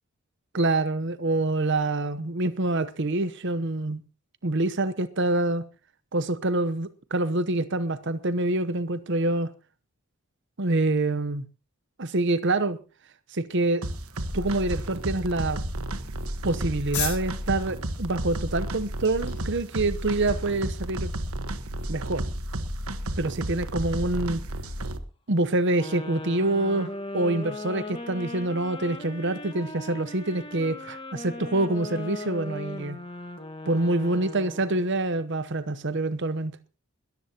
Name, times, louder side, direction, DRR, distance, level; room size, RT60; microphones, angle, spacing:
voice 1, 0.5-4.0 4.4-5.6 6.1-9.5 10.6-11.4 12.0-12.8 13.3-13.8 14.3-15.6 16.4-21.1 21.9-22.2 23.2-24.4 25.3-33.0 33.7-36.6, right 2 dB, 55° right, 0.9 m, -26 dB
sound 1, 13.8-25.0, right 1 dB, 75° right, 1.3 m, -32 dB
sound 2, 14.1-21.2, left 9 dB, 50° left, 5.6 m, -41 dB
sound 3, 25.7-35.0, left 2 dB, 25° left, 1.7 m, -38 dB
21.0 x 14.0 x 2.9 m
head